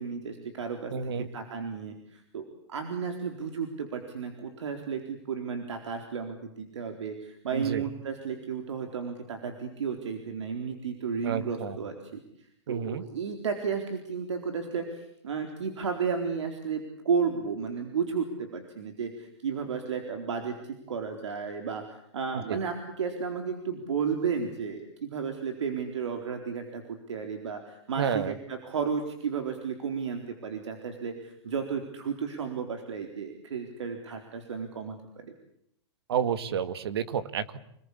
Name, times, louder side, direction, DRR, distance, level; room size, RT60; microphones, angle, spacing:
voice 1, 0.0-35.0, right 6 dB, 80° right, 5 dB, 4.1 m, -33 dB
voice 2, 0.9-1.3 7.5-7.8 11.2-11.8 12.7-13.0 22.5-22.6 28.0-28.3 36.1-37.6, right 7 dB, 60° right, 13 dB, 2.0 m, -30 dB
28.0 x 20.5 x 8.5 m, 0.74 s
hypercardioid pair, 170°, 15 cm